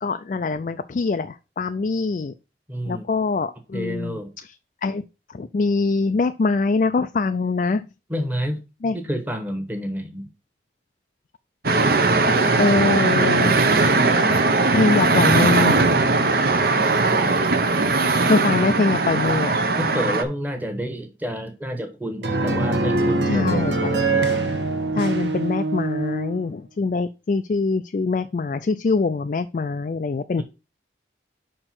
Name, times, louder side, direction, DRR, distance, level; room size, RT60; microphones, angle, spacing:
voice 1, 0.0-2.3 2.9-4.5 4.8-5.0 5.3-7.8 8.8-9.0 11.6-11.9 12.6-13.6 14.7-15.9 18.3-19.6 23.3-23.9 24.9-30.4, left 4 dB, 45° left, 0.3 m, -23 dB
voice 2, 2.7-3.1 3.7-4.3 8.1-8.6 8.9-10.3 16.8-17.5 19.8-24.3, equal, 10° right, 1.2 m, -30 dB
sound 1, 11.6-20.2, right 3 dB, 55° right, 0.8 m, -19 dB
sound 2, 22.2-26.4, right 2 dB, 75° right, 1.1 m, -23 dB
5.4 x 4.4 x 5.9 m
head